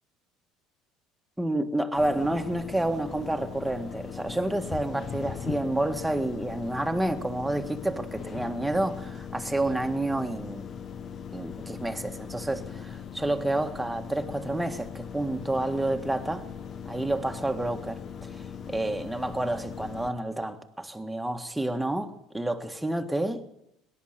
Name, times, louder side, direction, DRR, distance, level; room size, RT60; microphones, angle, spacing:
voice 1, 1.4-10.7 11.3-16.5 16.8-23.4, right 1 dB, 5° right, 1.6 m, -29 dB
sound 1, 2.0-20.1, left 7 dB, 45° left, 1.1 m, -39 dB
18.0 x 11.0 x 6.7 m
supercardioid pair, 85°, 0 cm